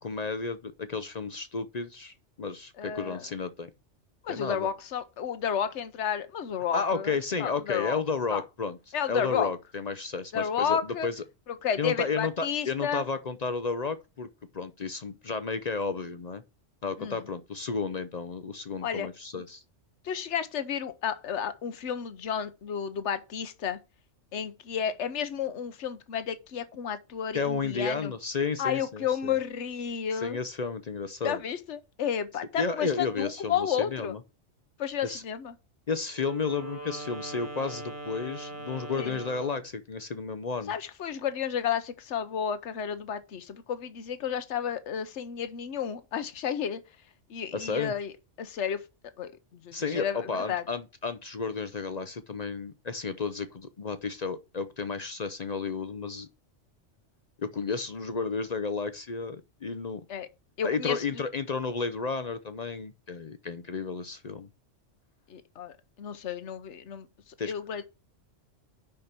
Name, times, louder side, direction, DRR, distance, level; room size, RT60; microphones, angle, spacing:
voice 1, 0.0-3.7 4.3-4.7 6.7-8.8 9.1-11.2 11.8-14.3 14.5-16.4 16.8-19.6 27.3-29.4 30.1-31.4 32.6-34.2 35.0-35.2 35.9-40.7 47.5-47.9 49.7-56.3 57.4-60.0 60.6-64.5 67.4-67.5, left 4 dB, 45° left, 0.6 m, -32 dB
voice 2, 2.8-3.2 4.2-8.0 8.3-8.4 8.9-9.5 10.3-11.1 11.6-13.0 17.0-17.2 18.8-19.1 20.0-23.8 24.3-28.1 28.6-30.4 31.2-34.2 34.8-35.5 39.0-39.2 40.7-46.8 47.3-48.1 48.4-48.8 49.2-50.6 60.1-60.3 60.6-61.0 65.3-65.7 66.0-67.1 67.4-67.8, left 8 dB, 70° left, 1.2 m, -32 dB
Wind instrument woodwind instrument, 36.1-39.7, right 2 dB, 15° right, 1.6 m, -41 dB
6.7 x 5.8 x 6.7 m
omnidirectional pair, 1.2 m